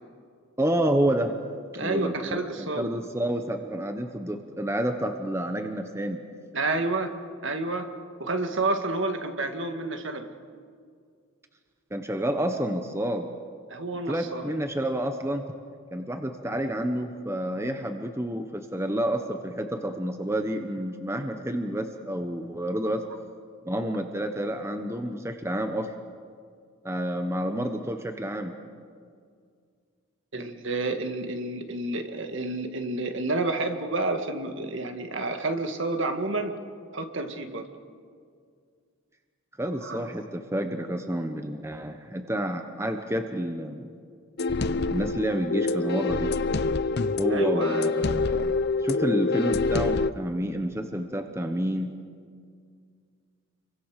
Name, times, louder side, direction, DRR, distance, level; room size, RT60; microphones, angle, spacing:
voice 1, 0.6-1.3 1.8-6.2 11.9-13.3 14.1-15.4 15.9-23.0 23.6-25.9 26.8-28.6 39.6-43.9 44.9-46.3 47.2-48.5 48.8-51.9, right 1 dB, 10° right, 6 dB, 1.1 m, -29 dB
voice 2, 1.7-2.9 6.5-7.1 7.4-7.9 8.2-10.3 13.7-14.5 30.3-36.5 36.9-37.6 39.8-40.0 47.3-47.9, right 2 dB, 60° right, 6 dB, 2.1 m, -29 dB
sound 1, 44.4-50.1, left 3 dB, 50° left, 0.6 m, -26 dB
29.5 x 24.0 x 6.6 m, 2.1 s
head